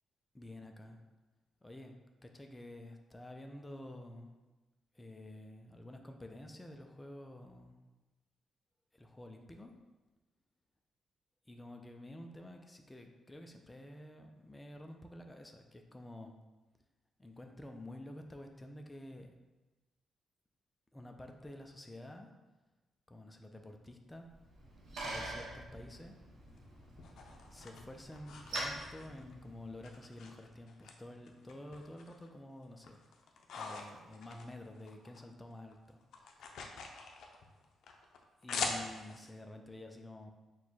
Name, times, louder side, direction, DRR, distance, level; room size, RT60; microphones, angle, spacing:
voice 1, 0.3-1.0 1.6-2.0 2.2-4.3 4.9-7.7 8.9-9.7 11.5-16.3 17.2-19.3 20.9-22.3 23.1-24.3 25.0-26.2 27.5-33.0 33.6-36.0 38.4-40.3, left 1 dB, 15° left, 3 dB, 0.4 m, -50 dB
Bicycle, 24.3-30.0, right 1 dB, 80° right, 1.0 m, -45 dB
sound 1, 26.5-29.3 29.8-30.9 31.3-32.3 32.6-35.2 35.5-39.3, left 4 dB, 75° left, 0.5 m, -44 dB
4.5 x 2.2 x 4.1 m, 1.1 s
cardioid pair, 110°, 0 cm